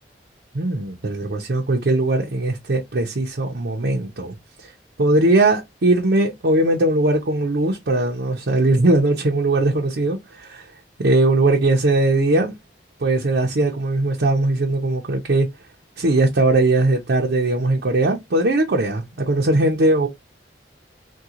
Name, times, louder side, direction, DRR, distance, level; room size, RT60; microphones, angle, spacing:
voice 1, 0.5-4.4 4.6-4.7 5.0-10.6 11.0-12.6 13.0-15.5 16.0-20.1, right 2 dB, 70° right, 0.7 m, -19 dB
3.6 x 2.3 x 2.8 m
head